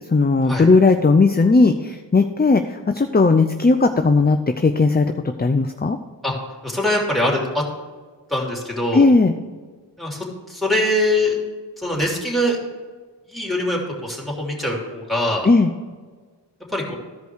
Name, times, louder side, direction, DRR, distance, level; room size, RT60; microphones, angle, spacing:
voice 1, 0.1-5.1 5.4-6.0 8.9-9.3 15.4-15.7, left 3 dB, 20° left, 7 dB, 0.5 m, -16 dB
voice 2, 6.6-7.6 8.3-9.1 10.0-10.2 10.5-11.4 11.8-12.6 13.3-15.5 16.7-16.9, left 1 dB, ahead, -2 dB, 3.1 m, -22 dB
14.5 x 5.2 x 4.7 m, 1.4 s
wide cardioid pair, 55°, 44 cm